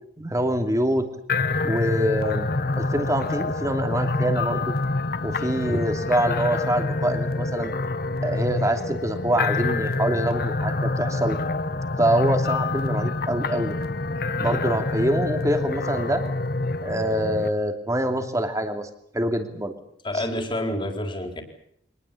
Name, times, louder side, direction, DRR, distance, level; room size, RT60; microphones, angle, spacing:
voice 1, 0.2-1.1 1.6-2.5 2.8-4.7 5.2-7.7 8.2-11.4 12.0-13.8 14.4-16.2 16.8-18.9 19.1-19.7 20.1-20.2, right 1 dB, 20° right, 6 dB, 2.8 m, -25 dB
sound 1, 1.3-17.5, left 3 dB, 55° left, 1.2 m, -26 dB
voice 2, 20.0-21.4, left 1 dB, 30° left, 5 dB, 4.3 m, -28 dB
24.5 x 20.0 x 8.5 m, 0.68 s
head